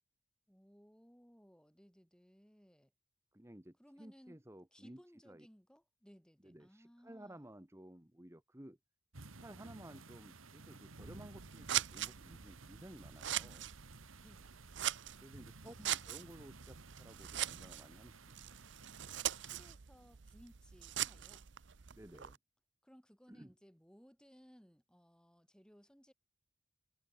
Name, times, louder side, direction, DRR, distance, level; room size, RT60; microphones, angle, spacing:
voice 1, 0.5-2.9 3.8-4.4 4.7-7.5 14.2-14.7 15.6-16.2 19.4-21.5 22.8-26.1, equal, 5° left, 6.6 m, -63 dB
voice 2, 3.3-5.0 5.3-5.5 6.4-8.8 9.4-13.7 15.2-18.4 21.9-22.4 23.3-23.5, right 1 dB, 15° right, 1.2 m, -55 dB
sound 1, 9.1-19.7, right 3 dB, 80° right, 1.8 m, -56 dB
Scissors, 10.9-22.4, right 12 dB, 60° right, 0.7 m, -42 dB
head